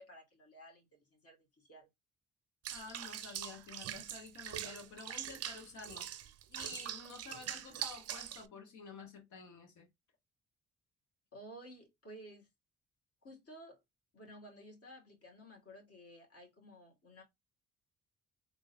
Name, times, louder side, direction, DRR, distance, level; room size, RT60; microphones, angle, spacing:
voice 1, 0.0-1.9 11.3-12.5 13.2-13.8 14.1-17.2, equal, 50° left, 2.1 m, -54 dB
Water / Bathtub (filling or washing), 2.6-8.5, right 11 dB, 55° right, 0.5 m, -43 dB
voice 2, 2.7-9.9, left 4 dB, 70° left, 1.4 m, -51 dB
3.7 x 2.9 x 2.7 m
hypercardioid pair, 50°, 30 cm